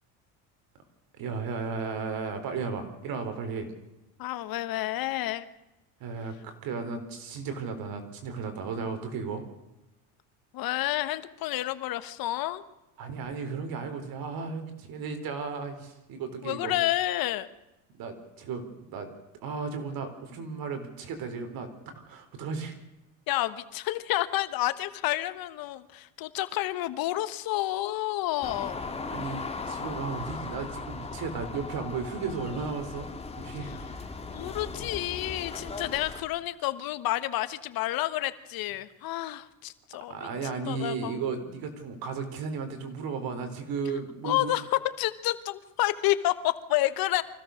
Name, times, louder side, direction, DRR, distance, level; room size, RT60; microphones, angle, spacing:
voice 1, 1.2-3.7 6.0-9.4 13.0-16.8 18.0-19.1 19.4-21.7 21.9-22.7 29.1-33.1 33.4-34.1 40.1-44.5, right 5 dB, 60° right, 8 dB, 4.3 m, -35 dB
voice 2, 4.2-5.5 10.5-12.6 16.4-17.5 23.3-28.8 34.3-41.2 44.2-47.2, left 15 dB, 60° left, 13 dB, 1.4 m, -30 dB
sound 1, 28.4-36.2, left 4 dB, 15° left, 2.3 m, -38 dB
24.5 x 16.0 x 6.6 m, 0.98 s
cardioid pair, 115°, 40 cm